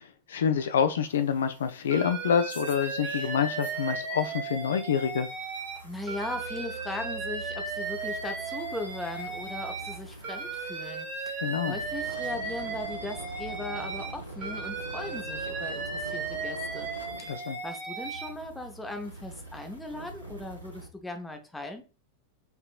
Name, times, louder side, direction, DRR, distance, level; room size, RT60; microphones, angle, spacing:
voice 1, 0.0-5.3 11.4-11.8 17.2-17.6, left 7 dB, 65° left, 0.3 m, -27 dB
sound 1, 1.0-4.2 4.5-20.9, right 2 dB, 85° right, 0.9 m, -44 dB
Alarm, 1.9-5.8 6.1-9.9 10.2-14.1 14.4-18.3, right 4 dB, 45° right, 1.8 m, -36 dB
voice 2, 5.8-16.9 17.2-21.8, left 2 dB, 5° left, 0.7 m, -39 dB
4.4 x 2.9 x 2.3 m
figure-of-eight pair, 90°, 0 cm